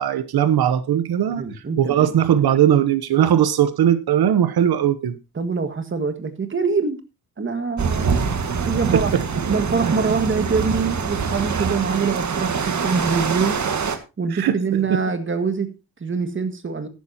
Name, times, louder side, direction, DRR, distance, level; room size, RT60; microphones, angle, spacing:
voice 1, 0.0-1.4 1.8-5.2 8.9-9.2 11.5-11.6 14.3-14.6, right 10 dB, 85° right, 1.0 m, -19 dB
voice 2, 1.3-2.1 5.3-7.0 7.4-8.3 8.6-9.1 9.5-13.6 14.2-16.9, right 5 dB, 35° right, 1.8 m, -24 dB
sound 1, 7.8-14.0, right 5 dB, 50° right, 1.8 m, -24 dB
14.0 x 12.0 x 2.8 m
wide cardioid pair, 135°, 36 cm